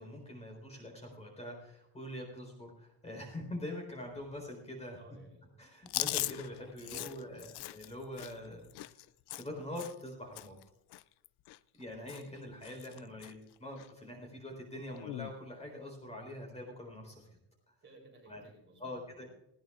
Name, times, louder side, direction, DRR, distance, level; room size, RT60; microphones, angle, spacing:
voice 1, 0.0-5.0 5.6-8.7 9.3-10.6 11.7-17.3 18.3-18.4 18.8-19.3, left 1 dB, 15° left, 1 dB, 4.2 m, -44 dB
voice 2, 5.0-5.5 6.9-7.6 12.8-13.0 17.8-19.3, right 2 dB, 25° right, 0 dB, 3.6 m, -56 dB
Chewing mastication, 5.9-10.1 10.4-10.6 10.9-11.8 12.1-12.4 12.6-13.3 13.8-13.9 14.9-15.3, left 17 dB, 60° left, 0.5 m, -40 dB
19.5 x 17.0 x 2.5 m, 0.87 s
cardioid pair, 175°, 46 cm